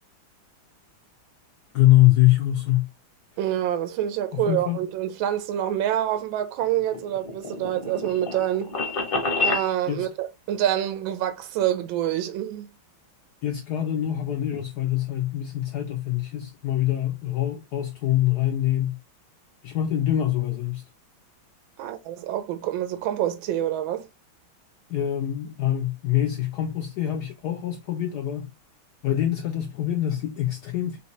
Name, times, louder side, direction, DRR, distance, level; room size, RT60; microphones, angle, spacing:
voice 1, 1.7-2.9 4.3-4.8 9.9-10.1 13.4-19.0 19.6-20.8 24.9-28.5 29.0-31.0, left 13 dB, 75° left, 0.9 m, -24 dB
voice 2, 3.4-8.8 9.4-12.7 21.8-24.1, right 11 dB, 75° right, 1.5 m, -27 dB
sound 1, 6.6-9.7, left 3 dB, 45° left, 0.7 m, -28 dB
4.2 x 3.2 x 3.0 m
omnidirectional pair, 2.3 m